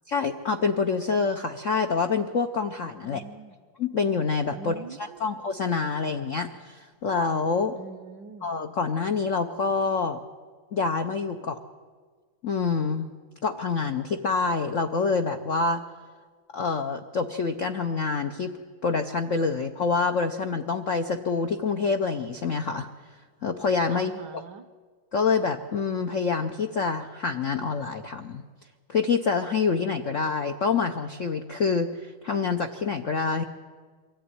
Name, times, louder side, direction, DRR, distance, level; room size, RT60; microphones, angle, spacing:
voice 1, 0.1-3.2 3.8-7.7 8.4-10.2 10.7-11.6 12.4-13.1 13.4-15.8 16.5-18.5 18.8-22.9 23.4-24.4 25.1-28.4 28.9-33.4, left 5 dB, 65° left, 5 dB, 0.7 m, -26 dB
voice 2, 3.0-3.6 4.6-5.3 7.7-8.5 23.9-24.6, right 4 dB, 65° right, 11 dB, 1.2 m, -43 dB
23.5 x 14.0 x 9.6 m, 1.5 s
omnidirectional pair, 2.4 m